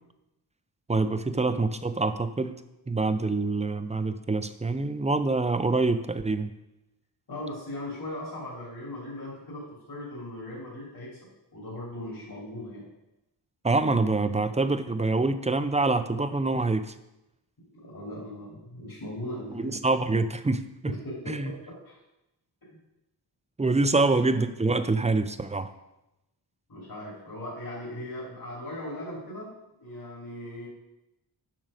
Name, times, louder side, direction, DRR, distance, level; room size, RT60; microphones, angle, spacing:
voice 1, 0.9-2.6 2.9-6.5 13.6-16.9 19.5-20.9 21.3-21.5 23.6-25.7, right 3 dB, 15° right, 10 dB, 0.5 m, -26 dB
voice 2, 7.3-11.2 11.5-12.8 17.7-19.7 20.8-21.5 21.8-22.0 22.6-22.8 26.7-29.5 29.8-30.7, left 1 dB, 55° left, -7 dB, 3.1 m, -38 dB
7.5 x 6.2 x 5.0 m, 0.92 s
wide cardioid pair, 85°, 42 cm